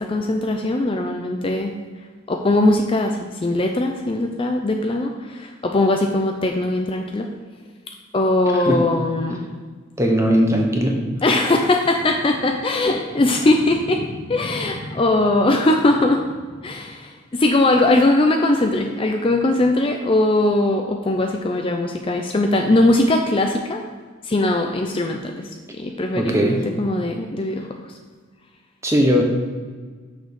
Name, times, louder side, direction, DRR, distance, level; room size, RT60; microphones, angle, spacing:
voice 1, 0.0-1.7 2.3-7.3 8.1-9.4 11.2-16.3 16.6-23.8 24.2-27.7, left 2 dB, 25° left, 3 dB, 0.5 m, -20 dB
voice 2, 10.0-11.0 26.2-26.6 28.8-29.2, equal, 15° right, 1 dB, 1.0 m, -18 dB
6.4 x 5.2 x 6.4 m, 1.5 s
head